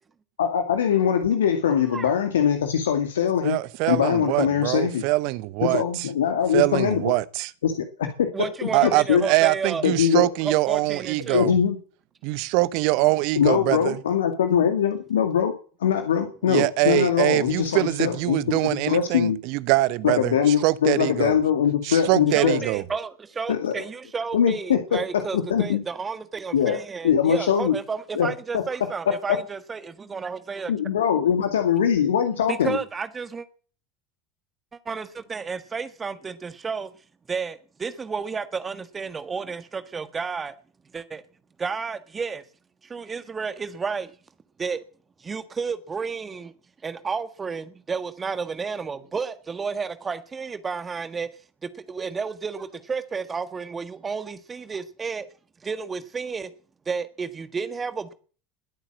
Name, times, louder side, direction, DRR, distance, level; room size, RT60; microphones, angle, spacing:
voice 1, 0.4-3.6 3.9-5.0 5.6-7.1 7.6-8.3 8.6-9.2 9.8-10.3 11.3-11.8 13.4-15.5 15.8-19.4 20.0-22.6 23.5-23.7 24.3-25.8 26.5-26.8 27.0-27.8 28.2-28.3 28.5-28.6 29.3-29.4 30.7-32.8, left 8 dB, 70° left, 2.2 m, -22 dB
voice 2, 3.4-6.1 6.5-7.5 8.7-11.6 12.2-14.0 16.5-21.4 21.8-22.8, right 20 dB, 55° right, 0.9 m, -23 dB
voice 3, 8.3-9.9 10.4-11.4 22.3-31.1 32.5-33.5 34.7-36.9 37.3-40.5 40.9-41.2 41.6-42.4 42.8-44.1 44.6-44.8 45.2-46.5 46.8-51.3 51.6-55.3 55.6-56.5 56.8-58.1, right 5 dB, 20° right, 1.6 m, -31 dB
21.5 x 8.9 x 7.5 m
figure-of-eight pair, 75°, 0 cm